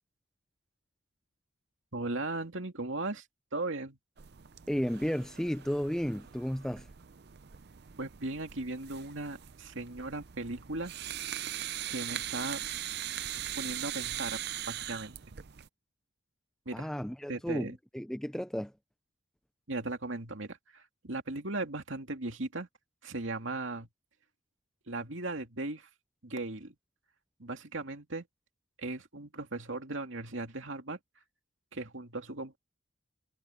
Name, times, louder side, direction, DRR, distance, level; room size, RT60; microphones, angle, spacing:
voice 1, 1.9-3.2 3.5-4.0 8.0-10.9 11.9-12.6 13.6-14.4 14.7-15.2 16.7-16.9 17.3-17.8 19.7-22.7 23.0-23.9 24.9-25.9 26.2-26.7 27.4-28.2 28.8-31.0 31.7-32.6, right 2 dB, 65° right, 2.5 m, -37 dB
sound 1, 4.2-15.7, right 12 dB, 50° right, 0.5 m, -41 dB
voice 2, 4.7-6.9 16.7-18.7, equal, 5° left, 0.4 m, -33 dB
head